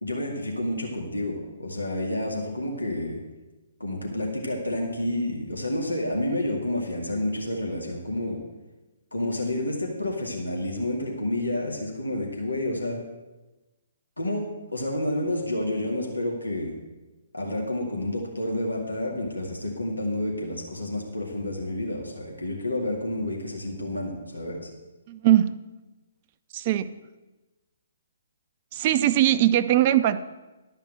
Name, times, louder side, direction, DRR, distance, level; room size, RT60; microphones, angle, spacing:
voice 1, 0.0-3.2 3.8-8.4 9.1-13.0 14.2-16.7 17.3-24.7, left 1 dB, 85° left, 0 dB, 2.2 m, -29 dB
voice 2, 25.1-25.5 26.5-27.0 28.7-30.2, right 13 dB, 35° right, 11 dB, 0.6 m, -21 dB
12.0 x 5.7 x 7.8 m, 1.1 s
figure-of-eight pair, 130°, 0 cm